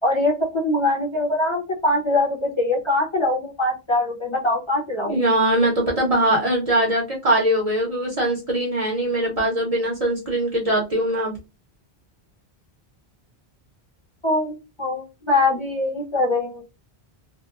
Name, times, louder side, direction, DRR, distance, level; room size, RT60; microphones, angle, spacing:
voice 1, 0.0-5.1 14.2-16.6, left 2 dB, 30° left, -3 dB, 0.7 m, -22 dB
voice 2, 5.1-11.3, right 1 dB, 40° right, -2 dB, 0.8 m, -21 dB
2.8 x 2.1 x 2.3 m, 0.26 s
omnidirectional pair, 1.1 m